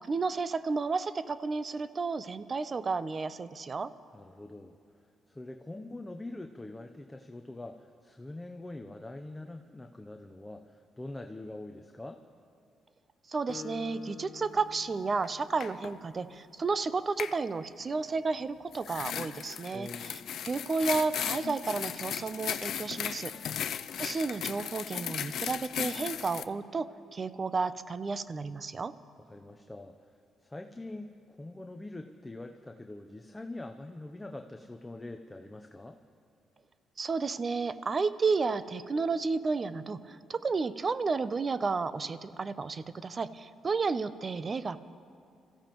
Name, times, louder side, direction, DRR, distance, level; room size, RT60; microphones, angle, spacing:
voice 1, 0.1-3.9 13.3-23.6 24.0-28.9 37.0-44.8, right 4 dB, 35° right, 14 dB, 0.6 m, -32 dB
voice 2, 4.1-4.8 5.3-12.2 19.7-20.2 23.5-23.7 29.3-30.0 30.4-36.0, left 2 dB, 15° left, 5 dB, 0.7 m, -44 dB
Acoustic guitar, 13.5-16.3, left 6 dB, 45° left, 0.8 m, -47 dB
sound 1, 15.2-15.3 15.6-15.9 17.2-17.4 18.7-26.4, left 9 dB, 70° left, 0.5 m, -36 dB
26.5 x 15.0 x 3.1 m, 2.4 s
cardioid pair, 90°, 0 cm